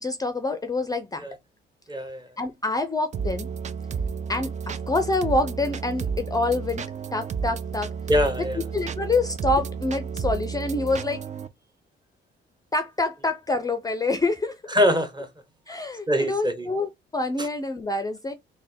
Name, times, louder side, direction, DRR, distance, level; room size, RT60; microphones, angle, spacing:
voice 1, 0.0-1.3 2.4-3.5 4.3-7.9 8.7-11.2 12.7-14.6 15.7-18.3, left 2 dB, 20° left, 0.5 m, -26 dB
voice 2, 1.9-2.3 8.1-8.6 14.7-15.3 16.1-16.7 17.4-17.5, equal, 20° right, 1.1 m, -23 dB
sound 1, 3.1-11.5, right 6 dB, 35° right, 0.5 m, -31 dB
3.3 x 2.2 x 4.2 m
cardioid pair, 90°, 20 cm